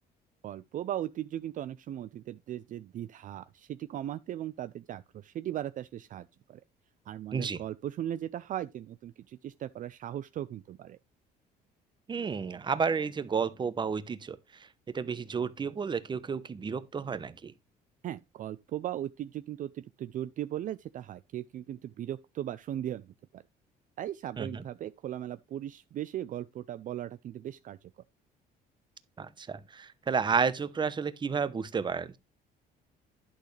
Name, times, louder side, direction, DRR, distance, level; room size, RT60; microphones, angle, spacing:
voice 1, 0.4-6.6 7.1-11.0 18.0-23.4 24.0-27.9, right 12 dB, 50° right, 0.5 m, -38 dB
voice 2, 12.1-14.4 14.9-17.5 24.4-24.6 29.2-32.2, right 5 dB, 25° right, 0.9 m, -31 dB
11.0 x 6.4 x 3.3 m
cardioid pair, 110°, 17 cm